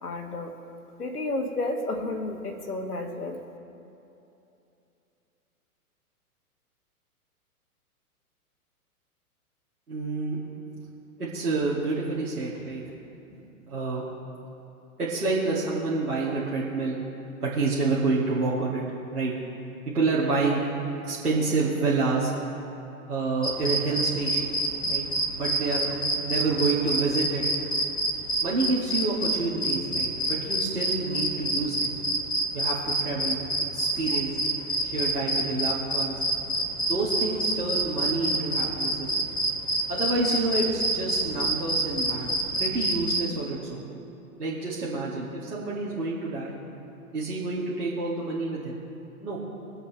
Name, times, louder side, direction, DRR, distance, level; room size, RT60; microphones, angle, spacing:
voice 1, 0.0-0.5 1.0-3.4, left 2 dB, 90° left, 5 dB, 1.6 m, -31 dB
voice 2, 9.9-10.4 11.2-12.8 13.7-14.0 15.0-17.0 17.4-18.8 19.1-19.3 19.8-20.6 21.0-22.3 23.1-24.6 24.9-25.0 25.4-27.4 28.4-31.9 32.5-33.4 33.7-34.3 34.8-36.2 36.8-39.3 39.9-42.3 42.6-43.9 44.4-46.5 47.1-48.8 49.2-49.4, right 3 dB, 85° right, -8 dB, 2.3 m, -28 dB
sound 1, 23.4-43.2, right 1 dB, 10° left, 1.2 m, -27 dB
22.0 x 7.9 x 3.4 m, 2.9 s
figure-of-eight pair, 110°, 45 cm